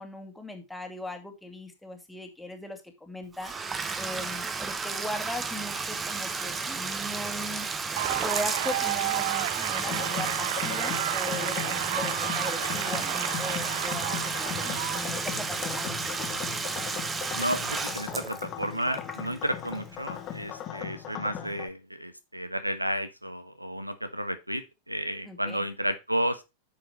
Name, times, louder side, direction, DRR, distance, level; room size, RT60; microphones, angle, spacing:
voice 1, 0.0-7.7 8.2-16.2 25.2-25.6, left 1 dB, 5° left, 4 dB, 2.3 m, -39 dB
Bathtub (filling or washing), 3.3-20.1, right 4 dB, 15° right, 1.0 m, -33 dB
sound 1, 8.0-15.2, right 14 dB, 55° right, 0.5 m, -32 dB
sound 2, 9.7-21.7, left 11 dB, 30° left, 1.4 m, -38 dB
voice 2, 17.3-26.4, equal, 85° right, 12 dB, 1.1 m, -32 dB
9.9 x 6.8 x 3.0 m, 0.24 s
figure-of-eight pair, 90°, 0 cm